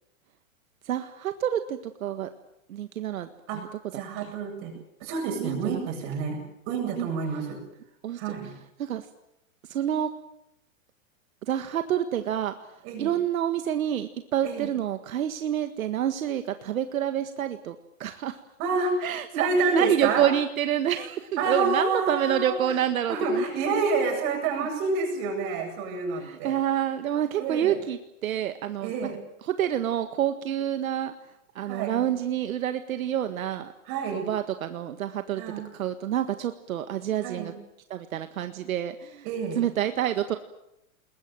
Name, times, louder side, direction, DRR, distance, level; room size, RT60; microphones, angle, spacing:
voice 1, 0.8-2.3 2.7-3.7 4.2-4.3 5.4-5.8 7.0-7.1 8.0-8.3 8.8-9.1 9.7-10.1 11.5-12.5 13.0-18.4 19.0-23.4 26.2-28.9 29.5-31.1 31.5-33.7 34.1-35.4 35.7-37.5 37.9-39.3 39.5-40.4, right 10 dB, 75° right, 8 dB, 1.8 m, -28 dB
voice 2, 3.9-4.7 5.0-7.6 8.2-8.5 12.8-13.1 14.4-14.7 18.6-19.1 19.3-20.3 21.4-22.8 23.1-26.6 27.4-27.8 28.8-29.2 31.7-32.0 33.9-34.3 35.4-35.7 37.2-37.5 39.2-39.6, right 4 dB, 30° right, 4 dB, 7.9 m, -28 dB
29.5 x 21.0 x 7.7 m, 0.82 s
supercardioid pair, 170°, 42 cm